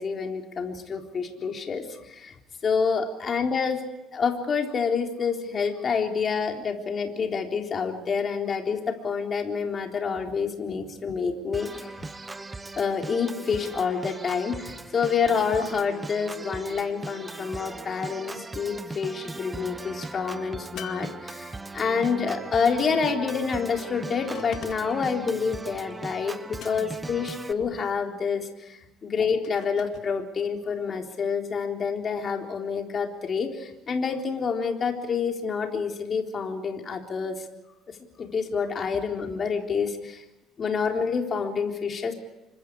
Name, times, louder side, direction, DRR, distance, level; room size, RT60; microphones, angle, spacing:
voice 1, 0.0-2.4 2.6-11.9 12.8-37.5 37.9-40.2 40.6-42.1, left 5 dB, 35° left, 3 dB, 3.8 m, -28 dB
Organ, 11.5-27.5, right 3 dB, 15° right, 1.1 m, -39 dB
sound 1, 20.8-21.9 24.3-25.1 26.6-27.2 29.4-30.1, left 10 dB, 60° left, 2.3 m, -44 dB
28.5 x 25.0 x 4.8 m, 1.0 s
cardioid pair, 135°, 0 cm